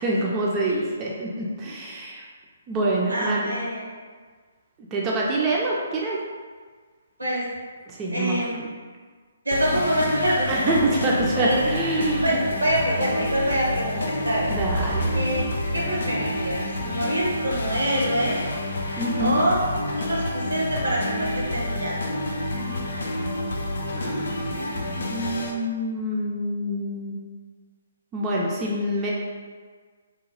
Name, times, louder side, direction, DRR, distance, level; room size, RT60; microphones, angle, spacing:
voice 1, 0.0-2.2 2.7-3.5 4.9-6.2 7.9-8.7 10.5-12.4 14.5-15.1 19.0-19.4 22.5-22.9 23.9-27.2 28.1-29.1, right 1 dB, 20° right, -4 dB, 0.4 m, -26 dB
voice 2, 3.1-3.8 7.2-7.4 8.1-8.6 9.4-11.7 12.2-14.5 15.1-18.4 18.9-19.6 20.0-22.1, equal, 85° right, -4 dB, 0.9 m, -26 dB
sound 1, 9.5-25.5, left 1 dB, 65° left, 0.4 m, -29 dB
sound 2, 14.3-18.2, right 2 dB, 35° left, 0.7 m, -33 dB
2.8 x 2.2 x 3.0 m, 1.6 s
figure-of-eight pair, 135°, 0 cm